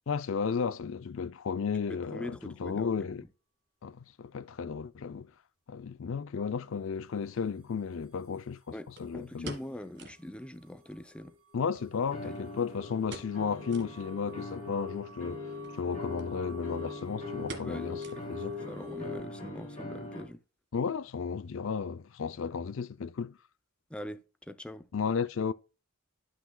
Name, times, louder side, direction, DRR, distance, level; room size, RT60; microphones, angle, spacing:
voice 1, 0.1-3.2 3.8-5.3 5.7-9.5 11.5-15.4 15.8-18.0 18.3-18.5 20.7-23.4 24.9-25.5, left 6 dB, 60° left, 0.4 m, -33 dB
voice 2, 1.9-3.1 8.7-11.4 12.2-12.4 17.6-20.4 23.9-24.9, left 1 dB, 5° left, 0.4 m, -43 dB
sound 1, 6.9-7.0 9.0-10.3 10.6-10.7 11.0-11.1 11.7-12.6 13.0-13.4 13.7-14.0 14.5-14.6 15.5-15.8 16.2-16.3 16.6-16.9 17.5-18.5 18.8-18.9 19.5-19.9 20.1-20.2, right 1 dB, 55° right, 1.7 m, -46 dB
sound 2, 10.8-19.2, left 5 dB, 90° right, 2.6 m, -43 dB
sound 3, 12.1-20.2, left 1 dB, 35° left, 3.6 m, -43 dB
12.5 x 5.9 x 2.2 m
head